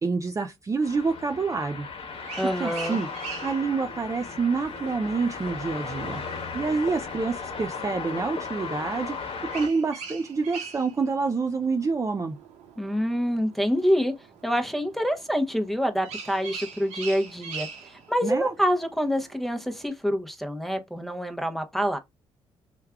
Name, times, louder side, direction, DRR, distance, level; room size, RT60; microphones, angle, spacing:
voice 1, 0.0-1.9 2.4-3.1 3.4-12.4 18.2-18.5, right 4 dB, 30° right, 0.4 m, -27 dB
sound 1, 0.8-9.7, left 5 dB, 55° left, 1.0 m, -36 dB
sound 2, 2.1-19.9, right 5 dB, 80° right, 0.9 m, -44 dB
voice 2, 2.4-3.0 12.8-14.1 14.4-17.7 18.1-22.0, equal, ahead, 0.7 m, -26 dB
3.2 x 2.3 x 3.5 m
supercardioid pair, 65°, 12 cm